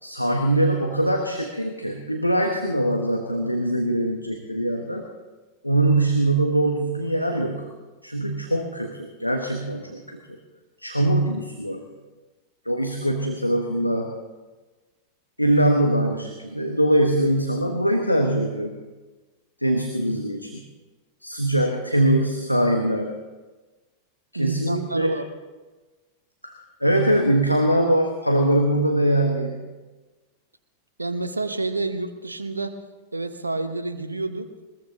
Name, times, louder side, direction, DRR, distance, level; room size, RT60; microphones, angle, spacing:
voice 1, 0.0-5.0 5.6-7.7 8.0-10.4 10.8-11.8 12.6-14.1 15.4-18.7 19.6-20.6 21.2-23.1 24.3-25.1 26.4-29.6, right 1 dB, 90° left, 3 dB, 1.3 m, -22 dB
voice 2, 24.3-25.3 31.0-32.8 33.1-34.5, right 3 dB, 80° right, 9 dB, 0.9 m, -29 dB
21.5 x 21.0 x 2.9 m, 1.2 s
figure-of-eight pair, 90°, 0 cm